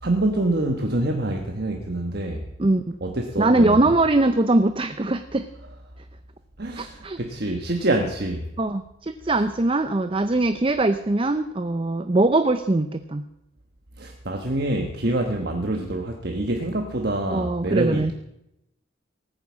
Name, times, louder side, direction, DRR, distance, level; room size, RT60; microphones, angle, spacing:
voice 1, 0.0-2.5 3.0-4.0 6.6-8.5 14.0-18.1, right 1 dB, 55° right, 3 dB, 1.3 m, -26 dB
voice 2, 2.6-3.0 3.4-5.5 6.8-7.2 8.6-13.2 17.3-18.1, right 2 dB, 25° right, 10 dB, 0.5 m, -22 dB
17.5 x 9.5 x 7.4 m, 0.84 s
head